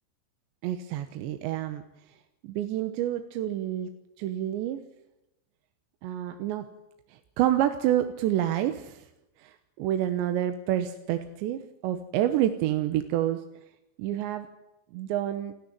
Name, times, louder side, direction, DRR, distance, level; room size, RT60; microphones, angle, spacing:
voice 1, 0.6-1.8 2.4-3.9 4.2-4.8 6.0-6.7 7.4-9.0 9.4-13.4 14.0-14.5 14.9-15.5, right 12 dB, 80° right, 8 dB, 3.3 m, -28 dB
29.0 x 13.0 x 9.0 m, 0.90 s
omnidirectional pair, 5.2 m